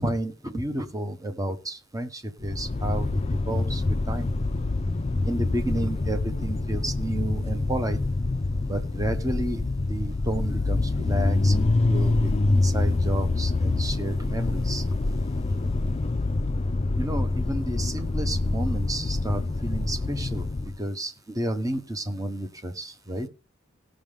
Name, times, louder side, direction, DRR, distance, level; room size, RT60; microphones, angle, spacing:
voice 1, 0.0-4.3 5.2-8.0 8.7-9.6 9.9-11.6 11.9-14.9 17.0-23.3, right 1 dB, 15° right, 8 dB, 1.2 m, -31 dB
sound 1, 2.4-20.8, left 2 dB, 30° left, 0.5 m, -26 dB
18.5 x 6.5 x 3.5 m, 0.32 s
head